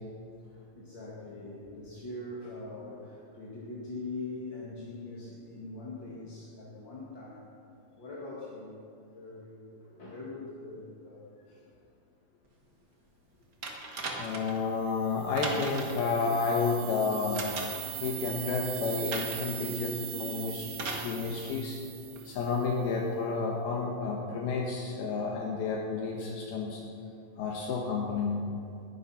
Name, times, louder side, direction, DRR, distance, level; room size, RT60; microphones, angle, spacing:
voice 1, 0.2-7.5 7.9-8.8 9.1-11.3 22.0-22.3 28.6-28.7, left 2 dB, 40° left, -6 dB, 2.0 m, -43 dB
sound 1, 13.6-14.6 15.4-16.1 17.3-17.9 19.1-19.5 20.7-21.1 22.2-22.3, right 3 dB, 45° right, 1.4 m, -37 dB
voice 2, 14.2-17.5 18.0-21.8 22.3-26.8 27.4-28.4, left 4 dB, 70° left, 0 dB, 3.0 m, -31 dB
sound 2, 14.8-22.7, right 13 dB, 80° right, 2.0 m, -41 dB
20.0 x 11.0 x 5.8 m, 2.5 s
omnidirectional pair, 4.7 m